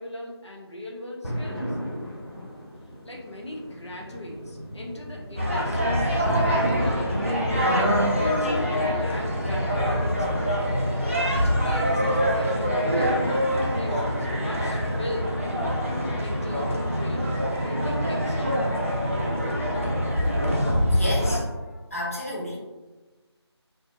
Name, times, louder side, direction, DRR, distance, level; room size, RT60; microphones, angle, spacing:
voice 1, 0.0-1.8 3.0-7.6 8.2-10.7 11.3-15.4 15.9-18.6, left 1 dB, 75° left, -2 dB, 0.7 m, -39 dB
sound 1, 1.2-19.2, equal, 60° left, 1.1 m, -37 dB
sound 2, 5.4-21.4, equal, 30° right, 0.3 m, -24 dB
voice 2, 20.9-21.4 21.9-22.6, left 1 dB, 30° left, -5 dB, 0.5 m, -30 dB
2.6 x 2.1 x 2.5 m, 1.2 s
figure-of-eight pair, 170°, 15 cm